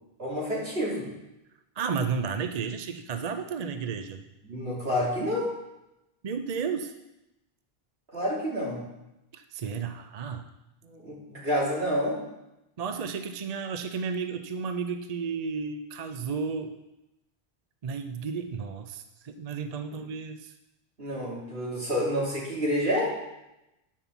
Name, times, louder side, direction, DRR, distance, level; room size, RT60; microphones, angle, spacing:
voice 1, 0.2-1.1 4.4-5.5 8.1-8.8 10.8-12.2 19.9-20.0 21.0-23.1, equal, 70° right, -6 dB, 3.5 m, -29 dB
voice 2, 1.8-4.2 6.2-6.9 9.3-10.5 12.8-16.8 17.8-20.5, right 5 dB, 45° right, 8 dB, 0.6 m, -33 dB
9.6 x 5.5 x 6.9 m, 0.93 s
omnidirectional pair, 1.1 m